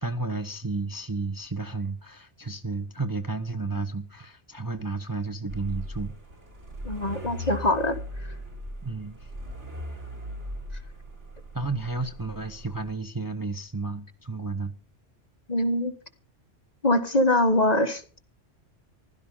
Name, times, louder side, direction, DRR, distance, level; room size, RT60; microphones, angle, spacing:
voice 1, 0.0-6.1 8.8-9.3 11.5-14.7, right 3 dB, 20° right, 1.1 m, -32 dB
sound 1, 5.5-12.9, equal, 85° right, 4.6 m, -39 dB
voice 2, 6.8-8.0 15.5-15.9 16.8-18.2, left 1 dB, 35° left, 1.6 m, -23 dB
16.0 x 12.5 x 5.6 m
omnidirectional pair, 1.2 m